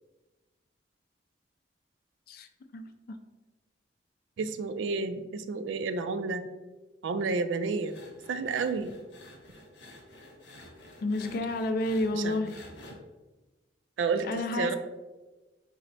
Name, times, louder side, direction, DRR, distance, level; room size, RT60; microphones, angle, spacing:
voice 1, 4.4-6.5 7.0-8.0 8.3-8.9 12.1-12.4 14.0-14.8, right 4 dB, 85° right, 10 dB, 0.3 m, -30 dB
sound 1, 7.8-12.9, left 1 dB, 75° left, 0.9 m, -50 dB
voice 2, 11.0-12.6 14.3-14.8, left 2 dB, 55° left, 8 dB, 0.3 m, -30 dB
4.4 x 2.0 x 3.9 m, 1.2 s
head